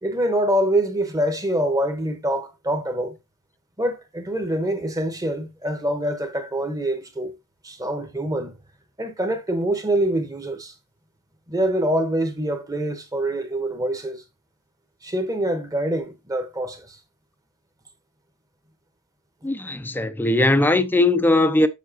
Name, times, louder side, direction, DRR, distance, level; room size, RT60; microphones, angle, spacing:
voice 1, 0.0-3.2 3.8-7.4 7.6-8.6 9.0-10.7 11.5-14.2 15.0-17.0, right 1 dB, 15° right, 1.2 m, -25 dB
voice 2, 19.4-21.7, left 2 dB, 10° left, 0.6 m, -19 dB
7.3 x 6.8 x 2.9 m
head